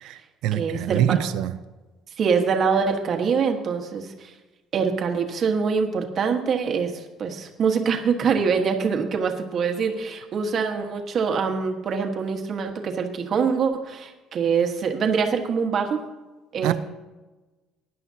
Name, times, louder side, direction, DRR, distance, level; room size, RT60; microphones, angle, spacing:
voice 1, 0.0-1.5 16.6-16.8, right 12 dB, 70° right, 0.6 m, -25 dB
voice 2, 0.5-1.2 2.2-4.3 4.7-6.9 7.2-16.0 16.5-16.7, right 6 dB, 35° right, 1.4 m, -24 dB
19.0 x 11.0 x 2.8 m
cardioid pair, 165°, 0 cm